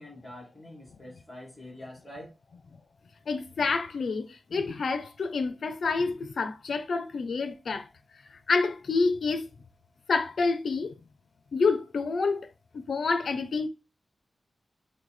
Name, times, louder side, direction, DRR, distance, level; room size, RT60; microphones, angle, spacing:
voice 1, 0.0-2.3, left 1 dB, 5° left, 2.1 m, -45 dB
voice 2, 3.3-7.9 8.5-9.5 10.1-10.9 11.5-12.5 12.7-13.7, left 4 dB, 65° left, 0.4 m, -28 dB
6.2 x 2.1 x 3.2 m
wide cardioid pair, 170°, 0 cm